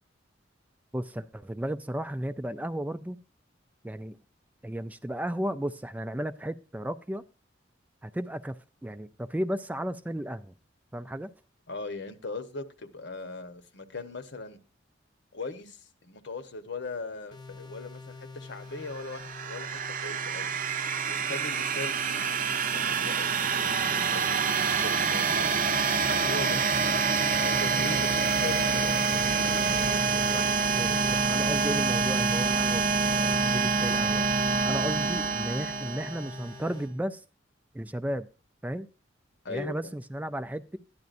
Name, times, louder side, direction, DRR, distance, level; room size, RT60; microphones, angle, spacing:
voice 1, 0.9-3.2 3.8-4.2 4.6-7.2 8.0-10.5 10.9-11.3 30.7-34.2 34.7-37.2 37.7-38.3 38.6-38.9 39.5-40.8, right 1 dB, 10° right, 0.4 m, -34 dB
voice 2, 11.7-14.6 15.3-20.6 21.1-22.2 22.7-25.7 26.1-26.9 27.4-29.9 30.3-30.5 39.4-39.9, left 3 dB, 65° left, 1.1 m, -40 dB
sound 1, 17.3-36.9, left 3 dB, 25° left, 0.9 m, -45 dB
sound 2, 18.9-36.5, right 5 dB, 45° right, 0.6 m, -26 dB
13.5 x 10.5 x 2.5 m
head